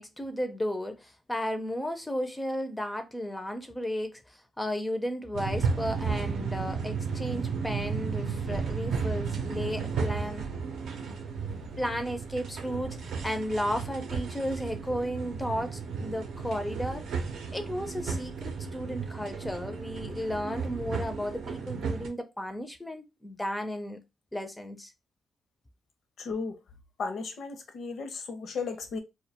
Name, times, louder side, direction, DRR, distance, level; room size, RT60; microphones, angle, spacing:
voice 1, 0.0-10.5 11.7-17.0 17.5-24.0 24.3-24.9, equal, 10° left, 0.4 m, -34 dB
sound 1, 5.3-22.1, right 5 dB, 85° right, 0.5 m, -34 dB
voice 2, 26.2-26.6 27.0-29.0, left 4 dB, 65° left, 0.6 m, -35 dB
2.3 x 2.1 x 2.7 m
cardioid pair, 105°, 0 cm